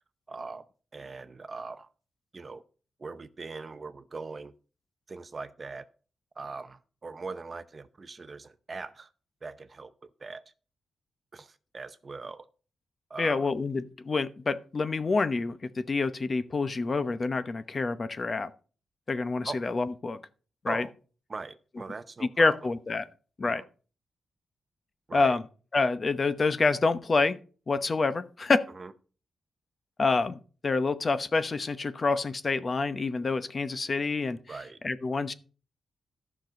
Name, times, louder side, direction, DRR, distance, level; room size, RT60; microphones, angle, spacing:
voice 1, 0.3-0.6 0.9-1.9 2.3-2.6 3.0-4.5 5.1-5.9 6.4-9.1 9.4-10.4 11.3-12.5 13.1-13.5 19.4-19.6 20.7-20.9 21.3-22.6 23.4-23.6 25.1-25.4 28.7-28.9 34.5-34.8, right 4 dB, 30° right, 0.7 m, -41 dB
voice 2, 13.2-18.5 19.1-20.2 20.6-20.9 22.2-23.1 23.4-23.6 25.1-25.4 25.7-27.4 27.7-28.6 30.0-34.4 34.8-35.3, left 3 dB, 35° left, 0.8 m, -27 dB
13.5 x 6.1 x 5.2 m
wide cardioid pair, 125°, 0 cm